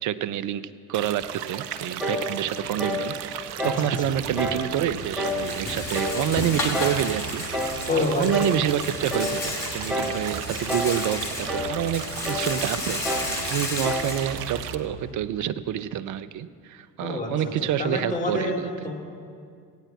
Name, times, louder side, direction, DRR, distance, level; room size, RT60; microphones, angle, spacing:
voice 1, 0.0-18.7, right 10 dB, 40° right, 15 dB, 0.6 m, -28 dB
sound 1, 0.9-14.7, right 10 dB, 70° right, 0.7 m, -36 dB
sound 2, 2.0-2.3 2.8-3.1 3.6-3.9 4.4-4.7 5.2-5.5 5.9-6.3 6.7-7.0 7.5-7.8 8.3-8.6 9.1-9.4 9.9-10.2 10.7-11.0 11.5-11.7 12.2-12.5 13.0-13.4 13.8-14.1, equal, ahead, 1.8 m, -29 dB
Rattle, 4.1-15.1, left 2 dB, 85° left, 1.6 m, -34 dB
voice 2, 7.9-8.2 17.0-17.3 17.8-18.6 18.8-18.9, left 2 dB, 15° left, -2 dB, 3.0 m, -26 dB
16.5 x 8.8 x 4.5 m, 2.2 s
figure-of-eight pair, 60°, 48 cm